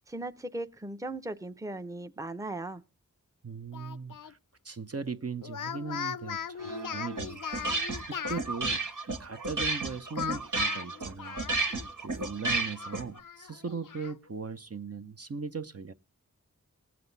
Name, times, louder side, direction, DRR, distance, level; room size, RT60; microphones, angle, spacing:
voice 1, 0.1-2.8, right 2 dB, 10° right, 0.7 m, -38 dB
voice 2, 3.4-4.4 4.6-6.6 6.9-7.4 7.8-8.8 9.2-11.4 12.0-15.9, right 5 dB, 50° right, 0.8 m, -38 dB
Speech, 3.7-4.3 5.4-8.5 10.2-11.9 12.2-12.3 12.7-14.2, left 8 dB, 80° left, 0.5 m, -39 dB
sound 1, 6.6-13.2, right 3 dB, 75° right, 1.5 m, -33 dB
19.0 x 7.7 x 4.0 m
wide cardioid pair, 55°, 32 cm